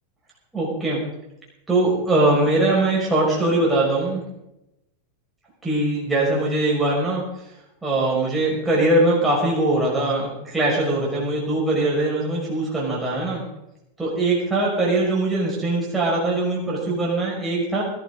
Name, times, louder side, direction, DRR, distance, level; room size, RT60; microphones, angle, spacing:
voice 1, 0.5-1.0 1.7-4.2 5.6-7.2 7.8-13.4 14.0-17.8, right 2 dB, 10° right, -5 dB, 5.8 m, -21 dB
21.5 x 12.0 x 4.0 m, 0.87 s
figure-of-eight pair, 90°, 0 cm